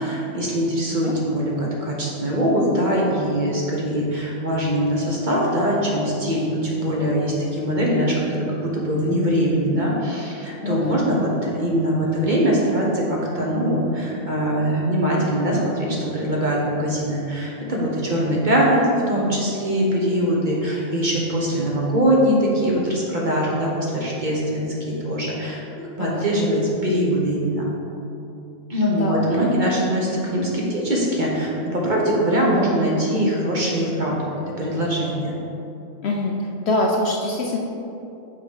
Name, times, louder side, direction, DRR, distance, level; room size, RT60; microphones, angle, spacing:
voice 1, 0.0-18.8 19.1-27.6 28.7-35.3, equal, 40° right, -4 dB, 1.1 m, -22 dB
voice 2, 10.6-11.0 18.7-18.8 26.0-26.3 29.0-29.2 36.0-37.6, left 2 dB, 60° left, -1 dB, 0.7 m, -24 dB
5.5 x 4.5 x 5.5 m, 2.8 s
omnidirectional pair, 1.4 m